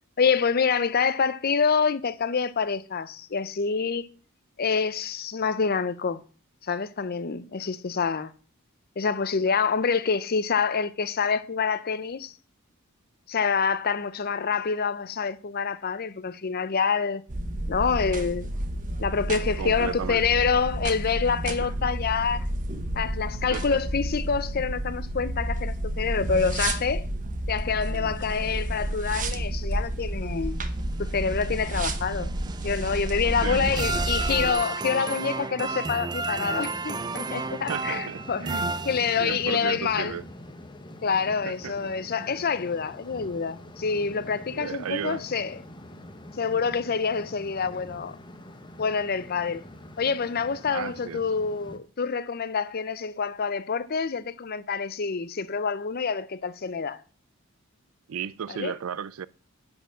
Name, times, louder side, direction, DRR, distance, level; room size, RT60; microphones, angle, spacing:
voice 1, 0.2-4.1 4.6-6.2 6.6-8.3 9.0-12.3 13.3-17.2 17.7-18.5 19.0-22.5 23.0-27.1 27.5-30.6 31.0-32.3 32.6-38.5 38.9-40.1 41.0-45.6 46.4-48.2 48.8-49.6 50.0-57.0 58.5-58.7, left 5 dB, 45° left, 0.6 m, -27 dB
sound 1, 17.3-34.5, right 1 dB, 40° right, 0.9 m, -31 dB
voice 2, 19.6-20.2 21.6-21.7 23.5-23.9 27.9-28.3 33.4-34.2 37.7-38.7 39.2-40.2 41.4-42.5 44.5-45.3 50.7-51.2 58.1-59.3, right 7 dB, 90° right, 0.4 m, -35 dB
sound 2, 30.6-39.5, right 3 dB, 20° right, 0.4 m, -33 dB
sound 3, 36.1-51.8, left 1 dB, 20° left, 0.9 m, -45 dB
10.5 x 4.4 x 7.3 m
head